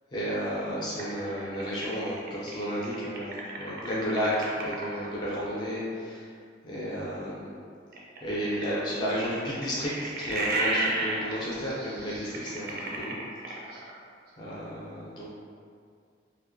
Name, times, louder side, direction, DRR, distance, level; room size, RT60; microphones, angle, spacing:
voice 1, 0.1-6.3 6.6-7.5 8.2-13.2 14.4-15.3, equal, 25° left, -7 dB, 0.4 m, -32 dB
sound 1, 1.0-5.1 7.9-14.0, right 2 dB, 55° right, 0.4 m, -33 dB
2.4 x 2.1 x 2.5 m, 2.2 s
head